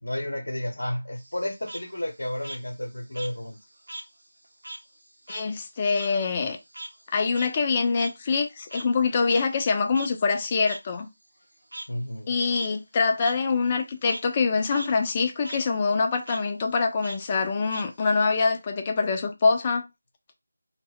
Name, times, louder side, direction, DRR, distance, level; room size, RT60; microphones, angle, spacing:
voice 1, 0.0-3.6 11.9-12.3, left 1 dB, 85° left, 0.8 m, -32 dB
Frog, 1.2-4.1 4.4-9.0 9.3-9.4 9.9-10.1 10.6-10.8 11.7-11.9 12.4-12.7 13.2-13.3 13.7-14.2 14.6-14.9 15.2-15.6 16.2-16.4 17.0-18.2, right 1 dB, 75° right, 0.7 m, -40 dB
voice 2, 5.3-6.6 7.1-11.1 12.3-19.9, left 4 dB, 25° left, 0.4 m, -24 dB
2.1 x 2.1 x 3.5 m
figure-of-eight pair, 165°, 0 cm